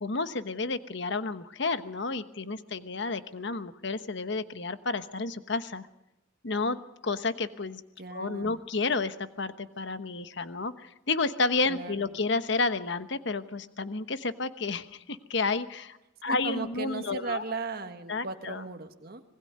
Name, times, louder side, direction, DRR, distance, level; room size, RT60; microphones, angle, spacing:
voice 1, 0.0-5.9 6.4-7.8 8.1-16.0 16.2-17.4 18.1-18.6, left 3 dB, 65° left, 11 dB, 1.1 m, -31 dB
voice 2, 8.0-8.6 11.7-12.1 16.2-19.2, right 3 dB, 50° right, 6 dB, 1.7 m, -37 dB
26.0 x 20.5 x 5.4 m, 0.90 s
head